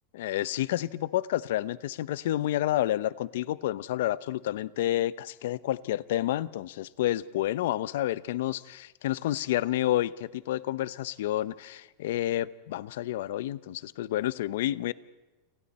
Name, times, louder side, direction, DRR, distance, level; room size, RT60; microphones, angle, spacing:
voice 1, 0.1-13.6 14.0-14.9, left 14 dB, 70° left, 0.8 m, -29 dB
30.0 x 28.0 x 4.3 m
supercardioid pair, 170°, 0 cm